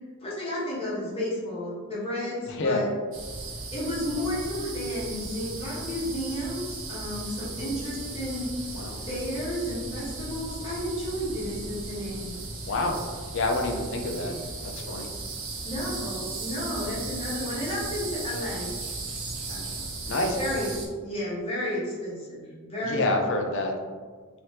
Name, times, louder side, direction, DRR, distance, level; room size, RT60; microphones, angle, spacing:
voice 1, 0.2-2.9 3.7-8.5 8.9-12.4 15.6-18.7 19.5-23.1, left 1 dB, 25° left, -8 dB, 1.1 m, -32 dB
voice 2, 2.5-2.8 8.7-9.0 12.7-13.0 13.3-14.3 14.7-15.1 20.1-20.4 22.8-23.7, left 2 dB, 55° left, 3 dB, 0.5 m, -27 dB
sound 1, 3.1-20.9, right 3 dB, 60° right, 0.6 m, -36 dB
2.9 x 2.8 x 3.2 m, 1.6 s
head